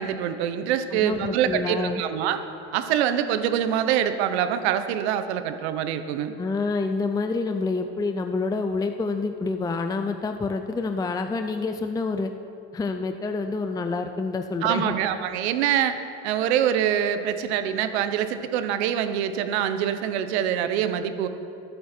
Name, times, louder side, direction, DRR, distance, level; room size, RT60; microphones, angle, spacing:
voice 1, 0.0-2.4 2.7-6.3 14.6-15.9 16.2-21.3, right 9 dB, 90° right, 10 dB, 1.1 m, -25 dB
voice 2, 0.9-2.0 6.4-12.3 12.7-15.0, left 3 dB, 10° left, 6 dB, 0.5 m, -27 dB
21.0 x 9.4 x 4.5 m, 2.7 s
supercardioid pair, 115°, 32 cm